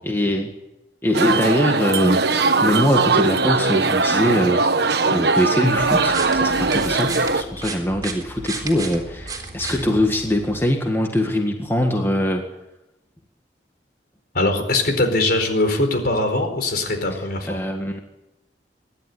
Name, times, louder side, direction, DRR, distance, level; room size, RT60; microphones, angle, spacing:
voice 1, 0.0-0.5 1.0-4.6 5.1-12.4 17.5-18.0, equal, 15° left, 3 dB, 1.7 m, -22 dB
sound 1, 1.1-7.4, right 3 dB, 65° right, 1.3 m, -20 dB
sound 2, 5.8-10.7, right 3 dB, 20° right, 3.8 m, -34 dB
voice 2, 14.3-17.6, left 2 dB, 60° left, 6 dB, 4.5 m, -21 dB
24.5 x 12.0 x 9.8 m, 0.94 s
head